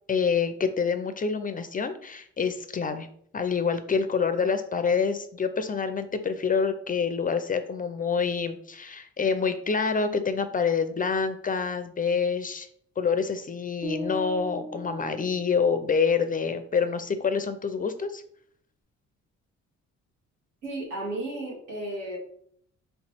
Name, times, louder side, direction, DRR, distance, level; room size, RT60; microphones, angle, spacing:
voice 1, 0.1-3.1 3.3-12.7 13.0-18.2, left 5 dB, 30° left, 10 dB, 0.4 m, -27 dB
sound 1, 13.8-16.0, right 1 dB, 50° right, 1.2 m, -38 dB
voice 2, 20.6-22.2, right 1 dB, 85° right, -3 dB, 1.7 m, -33 dB
3.2 x 3.0 x 4.3 m, 0.64 s
cardioid pair, 90°, 30 cm